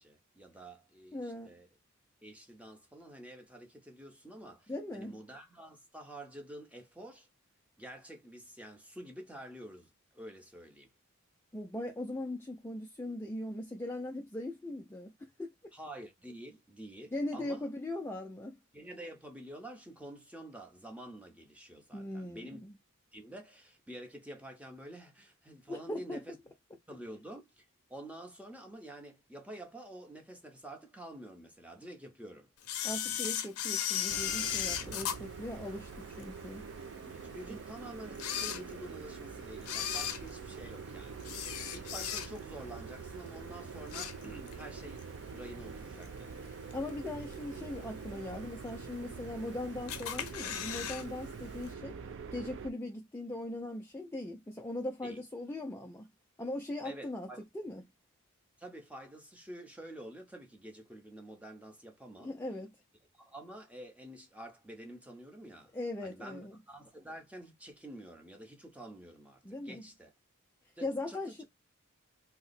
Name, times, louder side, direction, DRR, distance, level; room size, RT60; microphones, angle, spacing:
voice 1, 0.0-1.7 2.2-7.3 7.8-10.9 15.7-17.7 18.7-22.6 23.1-26.4 26.9-27.6 27.9-32.5 34.8-35.0 37.0-41.3 41.7-46.4 55.0-55.2 56.8-57.4 58.6-62.4 63.1-65.7 66.0-70.1 70.8-71.4, right 1 dB, 5° right, 0.7 m, -48 dB
voice 2, 1.1-1.5 4.7-5.2 11.5-15.5 17.1-18.6 21.9-22.7 25.7-26.2 32.8-36.7 37.5-37.6 46.5-52.0 52.3-56.1 56.4-57.3 57.5-57.9 62.2-62.7 65.7-66.6 69.4-69.8 70.8-71.4, left 1 dB, 10° left, 0.3 m, -40 dB
Camera, 32.6-36.2 36.7-36.8 37.5-37.6 38.1-39.1 39.6-42.6 43.0-43.2 43.6-44.6 45.0-45.1 46.0-46.1 46.7-47.1 47.5-47.6 47.8-47.9 48.1-48.2 48.9-49.5 49.9-51.0 51.3-51.4 51.7-51.8, left 9 dB, 80° left, 0.5 m, -36 dB
sound 1, 34.1-52.7, right 5 dB, 60° right, 0.4 m, -45 dB
2.8 x 2.0 x 4.0 m
head